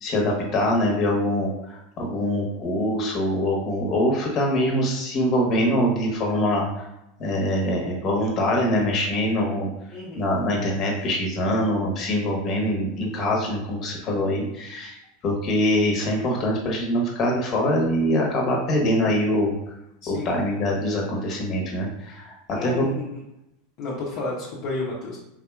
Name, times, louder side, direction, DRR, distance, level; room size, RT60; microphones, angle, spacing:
voice 1, 0.0-6.8 7.2-9.7 10.2-19.5 20.1-22.3 22.6-22.9, left 1 dB, 40° left, 0 dB, 1.2 m, -24 dB
voice 2, 9.9-10.3 20.0-20.4 22.5-23.2 23.8-25.2, left 2 dB, 55° left, -6 dB, 0.9 m, -31 dB
3.9 x 2.9 x 2.3 m, 0.86 s
hypercardioid pair, 105°, 0 cm